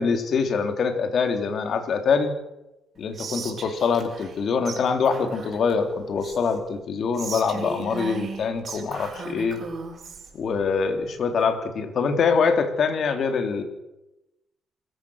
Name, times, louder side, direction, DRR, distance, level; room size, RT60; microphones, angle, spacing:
voice 1, 0.0-2.3 3.0-9.6 10.3-13.6, left 5 dB, 60° left, 6 dB, 3.4 m, -24 dB
Whispering, 3.1-4.4 4.6-4.8 5.0-6.6 7.1-10.3, right 5 dB, 50° right, 6.1 m, -37 dB
26.5 x 15.0 x 6.5 m, 0.95 s
cardioid pair, 90°, 0 cm